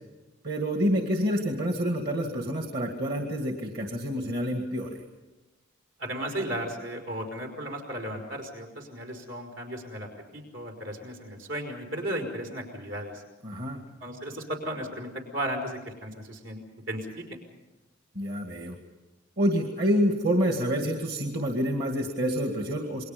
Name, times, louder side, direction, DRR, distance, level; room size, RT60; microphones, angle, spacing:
voice 1, 0.4-5.0 13.4-13.8 18.2-18.8 19.4-23.0, equal, 50° right, 3 dB, 2.3 m, -27 dB
voice 2, 6.0-13.2 14.0-16.6 16.9-17.2, right 1 dB, 75° right, 3 dB, 5.3 m, -35 dB
29.0 x 22.0 x 5.4 m, 1.1 s
head